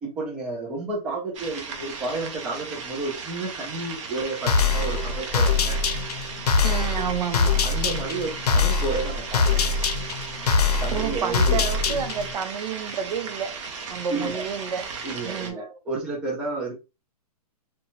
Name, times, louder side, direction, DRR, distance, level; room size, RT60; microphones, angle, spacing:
voice 1, 0.0-5.8 7.6-9.6 10.8-12.0 14.1-14.4 15.0-16.7, right 3 dB, 5° right, 0.3 m, -31 dB
sound 1, 1.3-15.5, right 5 dB, 50° right, 0.6 m, -36 dB
sound 2, 4.5-12.3, left 4 dB, 80° left, 0.6 m, -23 dB
voice 2, 6.6-7.6 10.9-13.5 13.9-14.9 15.2-15.8, right 7 dB, 90° right, 0.7 m, -30 dB
2.6 x 2.2 x 2.7 m
hypercardioid pair, 160°, 20 cm